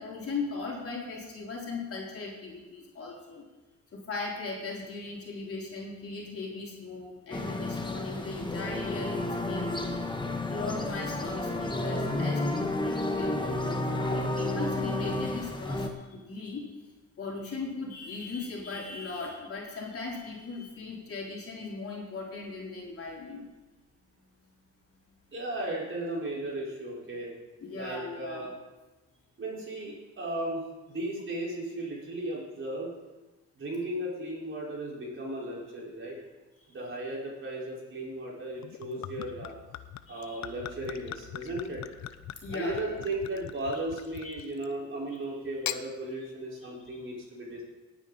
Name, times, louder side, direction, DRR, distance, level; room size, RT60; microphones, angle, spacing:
voice 1, 0.0-3.4 3.9-10.0 10.5-16.7 17.2-23.4 27.6-28.5 36.6-36.8 40.1-40.5 42.4-43.1 44.2-44.4 45.1-45.2 46.8-47.1, left 3 dB, 50° left, -3 dB, 3.9 m, -38 dB
sound 1, 7.3-15.9, left 2 dB, 15° left, 1.5 m, -31 dB
voice 2, 25.3-27.3 27.7-28.5 29.4-32.9 33.6-36.2 36.7-39.5 40.1-41.8 42.5-47.6, right 1 dB, 40° right, -4 dB, 5.0 m, -36 dB
Gurgling / Chink clink / Liquid, 38.6-44.8 45.4-45.8, left 11 dB, 65° left, 0.7 m, -41 dB
18.5 x 9.3 x 4.2 m, 1.2 s
cardioid pair, 90°, 30 cm